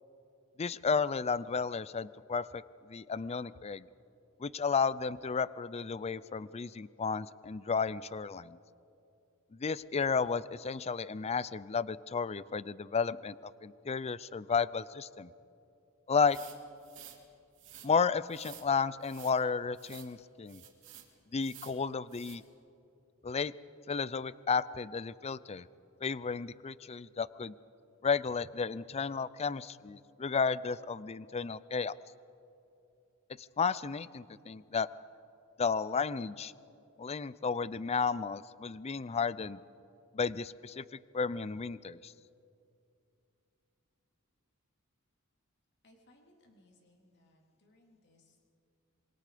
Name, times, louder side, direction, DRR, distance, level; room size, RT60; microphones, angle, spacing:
voice 1, 0.6-2.6 2.9-3.9 4.4-8.6 9.5-15.3 16.1-16.4 17.8-20.6 21.3-22.4 23.2-23.5 23.9-25.7 26.0-27.5 28.0-31.9 33.4-34.9 35.6-36.5 37.0-39.6 40.1-40.8 41.1-42.1, left 5 dB, 30° left, 18 dB, 0.4 m, -33 dB
sound 1, 16.2-17.2 17.5-17.9 18.3-18.7 19.0-19.4 19.7-20.1 20.5-21.1 21.4-21.8 22.1-22.4, right 11 dB, 60° right, 2.7 m, -52 dB
voice 2, 45.8-48.5, left 1 dB, 55° left, 0 dB, 3.6 m, -65 dB
27.0 x 22.5 x 5.1 m, 2.7 s
head